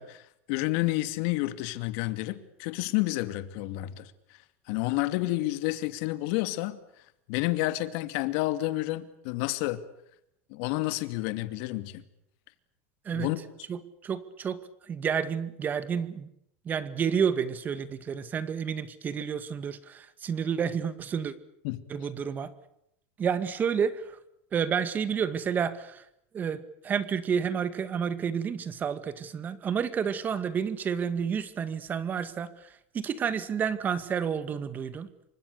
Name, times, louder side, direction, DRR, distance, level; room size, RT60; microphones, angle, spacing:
voice 1, 0.0-4.1 4.7-6.8 7.3-9.8 10.5-12.0 13.1-13.4 21.6-21.8, left 18 dB, 55° left, 11 dB, 2.6 m, -30 dB
voice 2, 13.7-14.6 14.9-16.3 16.7-21.3 21.9-22.5 23.2-24.2 24.5-26.0 26.3-35.1, right 7 dB, 20° right, 13 dB, 2.1 m, -30 dB
28.5 x 25.0 x 6.8 m, 0.78 s
supercardioid pair, 155°, 8 cm